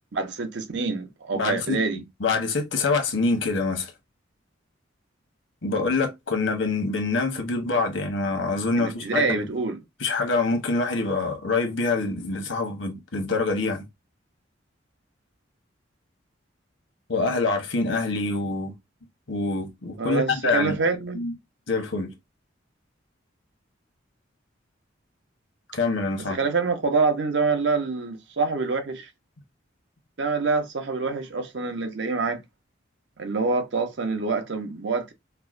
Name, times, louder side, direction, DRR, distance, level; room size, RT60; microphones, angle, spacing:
voice 1, 0.1-2.0 8.8-9.8 20.0-21.2 26.3-29.1 30.2-32.4 33.2-35.1, right 4 dB, 65° right, 0.7 m, -26 dB
voice 2, 1.3-1.8 2.2-3.9 5.6-9.5 10.0-13.8 17.1-18.7 19.3-20.8 21.1-21.3 21.7-22.1 25.7-26.4, left 3 dB, 80° left, 0.9 m, -25 dB
4.5 x 2.1 x 2.4 m
head